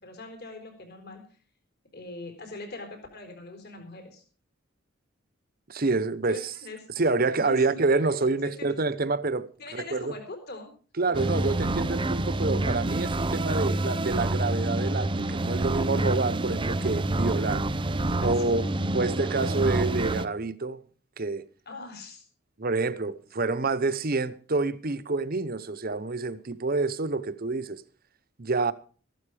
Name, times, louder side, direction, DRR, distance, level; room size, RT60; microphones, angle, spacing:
voice 1, 0.0-1.2 1.9-4.2 6.3-6.8 7.4-7.8 9.6-10.7 11.1-11.3 18.2-18.9 21.7-22.2, left 2 dB, 50° left, 4.2 m, -42 dB
voice 2, 5.7-6.5 7.0-9.5 9.9-10.1 11.0-17.6 18.2-18.6 18.9-20.8 21.2-21.4 22.6-27.8 28.4-28.7, right 3 dB, 45° right, 0.9 m, -27 dB
sound 1, 11.1-20.3, right 2 dB, 25° right, 0.7 m, -27 dB
14.5 x 12.5 x 4.9 m
head